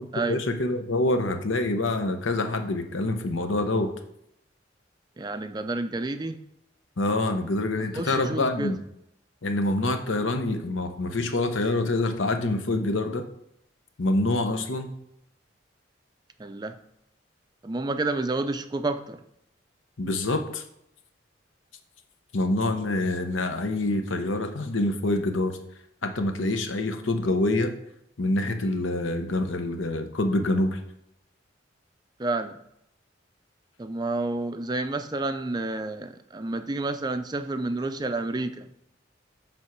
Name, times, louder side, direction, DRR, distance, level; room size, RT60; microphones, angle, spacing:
voice 1, 0.3-3.9 7.0-8.8 9.4-13.2 14.0-14.9 20.0-20.6 22.3-25.6 26.0-27.7 28.2-30.8, left 2 dB, 85° left, 7 dB, 0.9 m, -26 dB
voice 2, 5.2-6.4 8.0-8.7 16.4-16.8 17.6-19.2 32.2-32.6 33.8-38.7, right 2 dB, 20° right, 9 dB, 0.4 m, -29 dB
7.7 x 3.5 x 5.9 m, 0.77 s
head